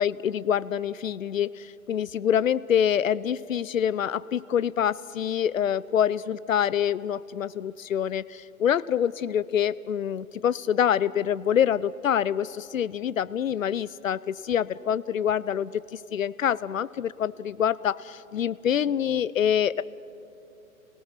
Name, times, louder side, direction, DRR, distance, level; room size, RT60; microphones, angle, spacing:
voice 1, 0.0-19.8, left 9 dB, 70° left, 19 dB, 0.6 m, -26 dB
28.0 x 18.0 x 5.9 m, 2.8 s
figure-of-eight pair, 115°, 42 cm